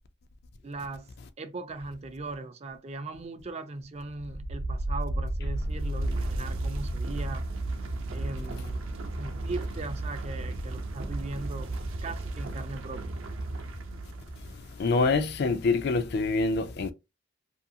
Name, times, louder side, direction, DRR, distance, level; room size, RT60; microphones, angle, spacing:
voice 1, 0.6-1.1 1.4-7.4 8.1-8.8 9.2-11.7 12.0-13.1, right 3 dB, 30° right, 0.4 m, -39 dB
sound 1, 4.1-14.9, right 1 dB, 75° right, 0.6 m, -33 dB
voice 2, 14.8-16.9, left 3 dB, 55° left, 0.4 m, -25 dB
2.7 x 2.5 x 2.7 m
head